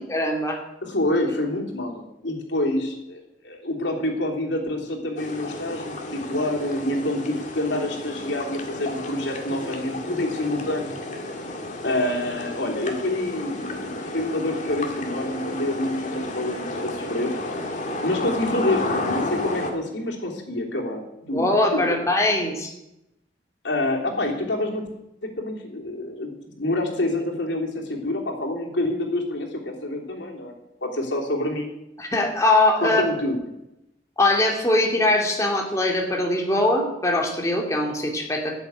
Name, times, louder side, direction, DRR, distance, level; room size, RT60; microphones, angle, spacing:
voice 1, 0.1-0.6 21.3-22.7 32.0-33.0 34.2-38.6, left 2 dB, 15° left, 1 dB, 2.4 m, -22 dB
voice 2, 0.8-11.0 11.8-17.3 18.0-21.0 21.3-21.4 23.6-24.9 25.2-30.5 30.8-31.7 32.8-33.4, left 1 dB, 85° left, 0 dB, 3.2 m, -27 dB
sound 1, 5.2-19.7, left 2 dB, 45° left, 2.0 m, -32 dB
13.0 x 7.2 x 9.5 m, 0.88 s
head